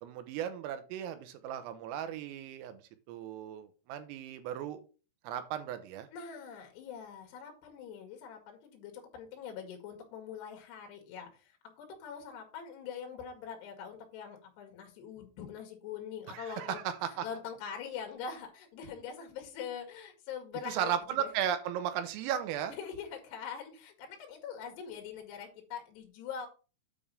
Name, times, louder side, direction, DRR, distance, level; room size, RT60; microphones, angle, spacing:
voice 1, 0.0-2.8 3.1-4.8 5.3-6.1 16.3-17.3 20.7-22.8, right 10 dB, 90° right, 9 dB, 3.6 m, -35 dB
voice 2, 6.1-16.8 17.1-20.9 21.2-21.3 22.8-26.5, left 7 dB, 60° left, 3 dB, 3.7 m, -43 dB
9.3 x 3.6 x 6.8 m, 0.35 s
omnidirectional pair, 6.0 m